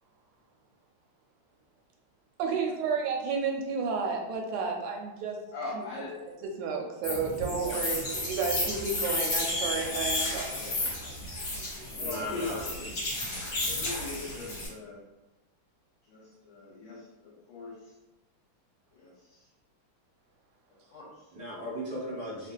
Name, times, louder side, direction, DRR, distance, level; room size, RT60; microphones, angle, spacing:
voice 1, 2.4-5.4 5.7-5.8 6.6-10.8, right 5 dB, 85° right, 1 dB, 1.5 m, -31 dB
voice 2, 5.5-6.2 7.7-8.0 11.9-12.7 13.6-15.0 16.1-17.9 18.9-19.5 20.8-21.3, left 3 dB, 75° left, -5 dB, 1.4 m, -40 dB
sound 1, 7.0-14.7, left 2 dB, 50° left, 1.3 m, -32 dB
voice 3, 12.0-12.9 21.3-22.5, equal, 25° right, -9 dB, 0.9 m, -37 dB
3.4 x 2.5 x 2.2 m, 1.0 s
omnidirectional pair, 2.4 m